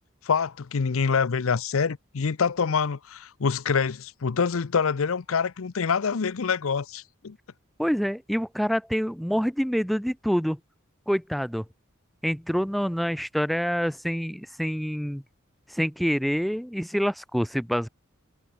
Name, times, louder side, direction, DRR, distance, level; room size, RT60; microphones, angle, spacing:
voice 1, 0.2-7.4, left 5 dB, 75° left, 0.6 m, -26 dB
voice 2, 7.8-10.6 11.1-11.6 12.2-15.2 15.7-17.9, equal, ahead, 1.3 m, -26 dB
head